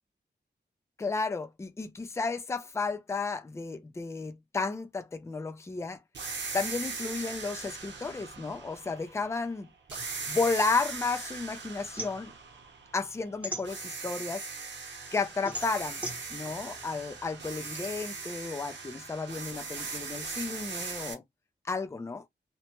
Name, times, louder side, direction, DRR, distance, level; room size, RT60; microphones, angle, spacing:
voice 1, 1.0-6.0 6.5-9.7 10.3-12.3 12.9-14.4 15.1-16.0 16.3-21.2 21.6-22.2, left 4 dB, 15° left, 0.4 m, -33 dB
sound 1, 6.1-9.4 9.9-13.3 13.6-21.1, right 4 dB, 85° right, 0.8 m, -40 dB
sound 2, 9.9-11.4 11.7-14.3 14.7-17.9, right 1 dB, 5° right, 0.8 m, -41 dB
2.8 x 2.1 x 2.9 m
wide cardioid pair, 175°, 18 cm